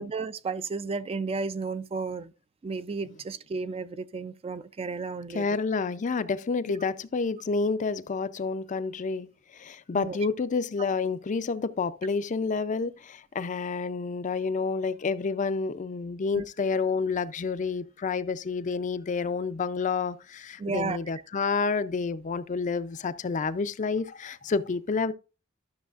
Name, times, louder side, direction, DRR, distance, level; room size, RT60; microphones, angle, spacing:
voice 1, 0.0-2.3 2.6-5.5 9.9-10.2 16.3-16.5 20.6-21.0, right 4 dB, 30° right, 0.3 m, -33 dB
voice 2, 5.3-25.1, left 4 dB, 35° left, 0.4 m, -29 dB
12.5 x 6.3 x 2.4 m
head